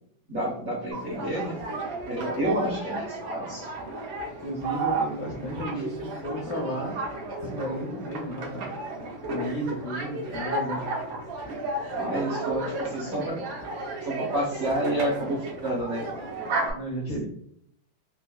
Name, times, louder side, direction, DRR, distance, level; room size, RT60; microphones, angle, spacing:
voice 1, 0.3-1.6 2.1-3.7 11.9-13.4 14.0-16.0 17.1-17.2, right 1 dB, 50° right, -4 dB, 0.9 m, -29 dB
sound 1, 0.9-16.7, right 2 dB, 75° right, 1.7 m, -33 dB
voice 2, 4.4-7.0 7.4-8.7 9.3-10.8 16.7-17.2, equal, 65° left, -1 dB, 0.9 m, -33 dB
4.3 x 2.3 x 2.3 m, 0.68 s
omnidirectional pair, 2.2 m